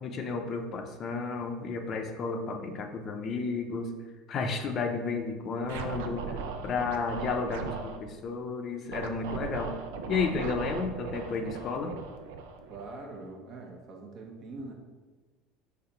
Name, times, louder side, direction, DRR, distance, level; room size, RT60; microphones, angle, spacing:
voice 1, 0.0-3.9 4.3-6.4 6.6-9.8 10.1-12.0, left 4 dB, 45° left, 4 dB, 0.6 m, -32 dB
Scratching (performance technique), 5.6-8.0 8.9-13.2, right 5 dB, 70° right, 0.4 m, -38 dB
voice 2, 12.7-14.7, right 3 dB, 50° right, 1 dB, 0.9 m, -43 dB
4.0 x 2.8 x 4.4 m, 1.3 s
hypercardioid pair, 75°, 0 cm